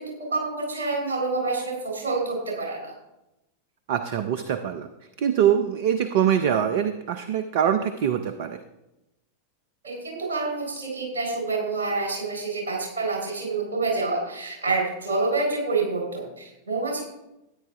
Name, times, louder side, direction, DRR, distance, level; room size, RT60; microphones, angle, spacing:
voice 1, 0.0-2.9 9.8-17.0, right 3 dB, 65° right, 0 dB, 4.0 m, -27 dB
voice 2, 3.9-4.9 5.2-8.6, right 9 dB, 50° right, 9 dB, 0.6 m, -23 dB
13.5 x 9.5 x 3.5 m, 0.94 s
figure-of-eight pair, 90°, 0 cm